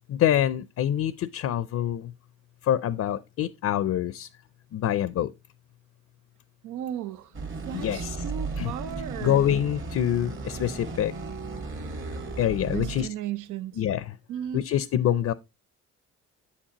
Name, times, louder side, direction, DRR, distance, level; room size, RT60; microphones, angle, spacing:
voice 1, 0.1-2.1 2.6-4.3 4.7-5.3 7.7-8.2 8.6-8.7 9.2-11.1 12.4-13.1 13.8-14.2 14.5-15.3, left 11 dB, 55° left, 0.5 m, -25 dB
voice 2, 6.6-7.3 7.7-9.4 12.7-13.8 14.3-14.6, right 10 dB, 85° right, 0.7 m, -35 dB
sound 1, 7.3-13.1, right 3 dB, 40° right, 1.7 m, -35 dB
8.2 x 7.3 x 2.9 m
cardioid pair, 90°, 30 cm